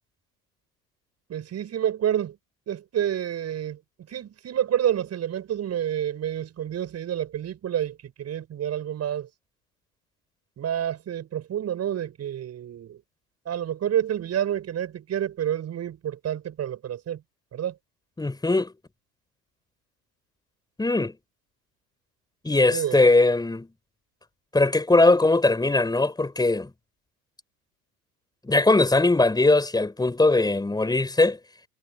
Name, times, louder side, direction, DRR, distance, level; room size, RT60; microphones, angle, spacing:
voice 1, 1.3-2.4 2.7-3.8 4.1-9.3 10.6-13.0 13.5-17.2 17.5-17.7 22.7-23.0, right 10 dB, 35° right, 7.7 m, -28 dB
voice 2, 18.2-18.7 20.8-21.2 22.4-23.7 24.5-26.7 28.4-31.4, left 2 dB, 10° left, 5.4 m, -20 dB
hypercardioid pair, 90°, 45 cm